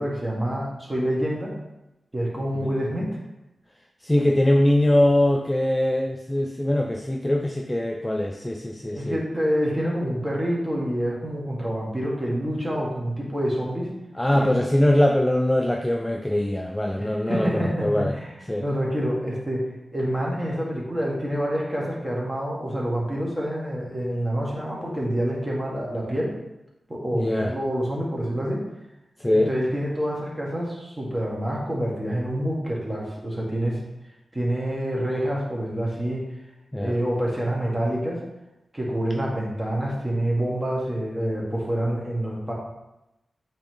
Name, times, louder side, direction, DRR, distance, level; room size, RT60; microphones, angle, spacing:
voice 1, 0.0-1.5 2.1-3.1 8.7-13.9 14.3-14.6 17.0-19.7 19.9-26.3 26.9-28.6 29.3-33.8 34.3-36.3 36.8-38.2 38.7-42.5, equal, 15° right, -4 dB, 1.5 m, -27 dB
voice 2, 4.0-9.2 14.2-18.1 18.5-18.6 27.1-27.5 29.2-29.5 36.7-37.0, left 1 dB, 10° left, 2 dB, 0.3 m, -22 dB
8.3 x 3.1 x 3.8 m, 0.94 s
wide cardioid pair, 135°, 0 cm